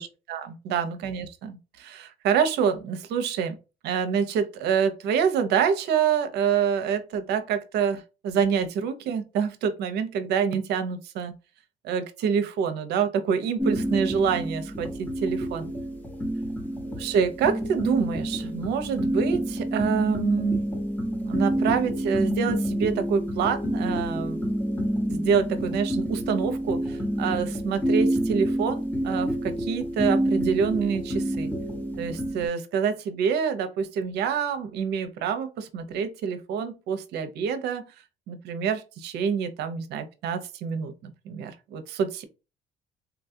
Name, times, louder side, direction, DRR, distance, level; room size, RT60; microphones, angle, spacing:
voice 1, 0.0-3.5 3.8-11.3 11.8-15.7 17.0-20.6 21.2-24.5 25.1-31.5 32.0-37.8 38.3-42.2, right 7 dB, 80° right, 0.7 m, -27 dB
sound 1, 13.6-32.5, equal, 10° left, 1.1 m, -28 dB
3.9 x 2.3 x 2.7 m
cardioid pair, 110°, 17 cm